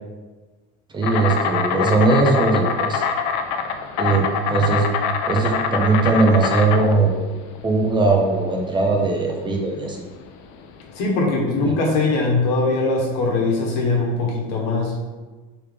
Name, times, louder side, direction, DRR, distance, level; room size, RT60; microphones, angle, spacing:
voice 1, 0.9-3.0 4.0-4.9 5.3-7.3 7.6-10.0 11.6-11.8, right 3 dB, 15° right, 1 dB, 0.4 m, -19 dB
Insect, 1.0-11.0, left 6 dB, 70° left, 0.5 m, -25 dB
voice 2, 11.0-15.0, left 3 dB, 90° left, -1 dB, 1.1 m, -21 dB
3.6 x 3.1 x 3.3 m, 1.3 s
cardioid pair, 145°, 29 cm